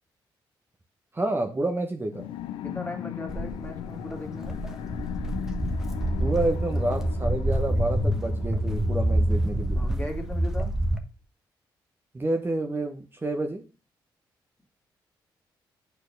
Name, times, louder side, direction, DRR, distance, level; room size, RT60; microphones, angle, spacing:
voice 1, 1.1-2.3 6.2-9.8 12.1-13.6, right 2 dB, 25° right, 4 dB, 1.2 m, -29 dB
sound 1, 2.1-10.3, left 11 dB, 90° left, 0.6 m, -38 dB
voice 2, 2.6-4.6 9.8-10.7, left 2 dB, 20° left, 2 dB, 2.3 m, -37 dB
Walk footsteps, 3.3-11.0, right 1 dB, 5° right, 1.1 m, -27 dB
6.9 x 4.4 x 5.4 m, 0.32 s
cardioid pair, 70°, 9 cm